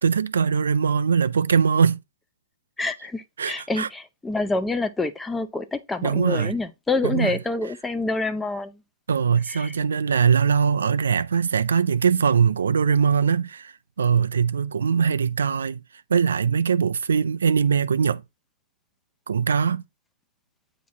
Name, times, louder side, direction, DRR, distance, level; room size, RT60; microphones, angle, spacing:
voice 1, 0.0-2.0 3.4-3.9 6.0-6.6 7.0-7.3 9.1-15.8 16.1-18.2 19.3-19.8, right 6 dB, 85° right, 0.4 m, -21 dB
voice 2, 2.8-8.7 9.5-9.7, left 3 dB, 10° left, 0.5 m, -27 dB
8.3 x 3.0 x 4.0 m
hypercardioid pair, 135°, 0 cm